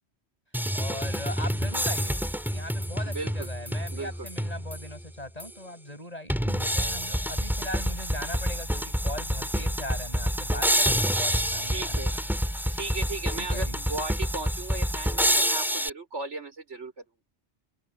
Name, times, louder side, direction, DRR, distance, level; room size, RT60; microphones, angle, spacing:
sound 1, 0.5-5.0 5.4-5.5 6.3-15.9, equal, ahead, 6.1 m, -28 dB
voice 1, 0.7-2.2 2.5-12.1 13.4-13.8, left 1 dB, 35° left, 7.1 m, -39 dB
voice 2, 3.0-3.5 3.9-4.3 11.4-12.2 12.7-17.0, right 3 dB, 90° right, 5.4 m, -36 dB
open air
omnidirectional pair, 1.2 m